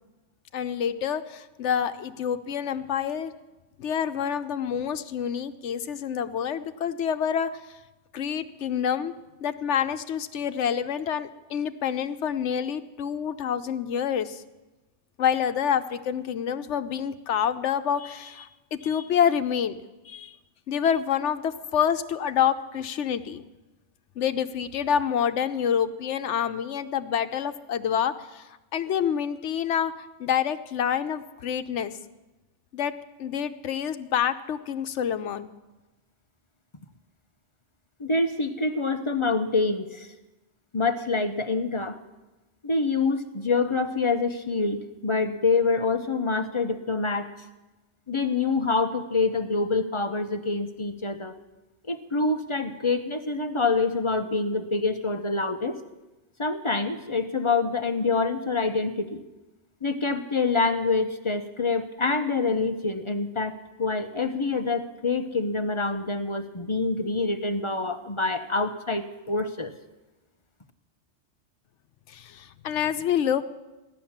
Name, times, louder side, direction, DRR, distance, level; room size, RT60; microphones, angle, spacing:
voice 1, 0.5-3.3 3.8-7.5 8.1-9.1 9.4-14.4 15.2-19.8 20.0-20.4 20.7-23.4 24.2-29.9 30.2-32.0 32.7-32.9 33.2-35.5 72.1-73.4, left 8 dB, 80° left, 10 dB, 1.0 m, -27 dB
voice 2, 38.0-40.1 40.7-42.0 42.6-47.3 48.1-51.3 51.9-55.8 56.4-59.2 59.8-69.7, left 3 dB, 30° left, 8 dB, 0.8 m, -26 dB
15.5 x 11.0 x 7.2 m, 1.1 s
omnidirectional pair, 1.2 m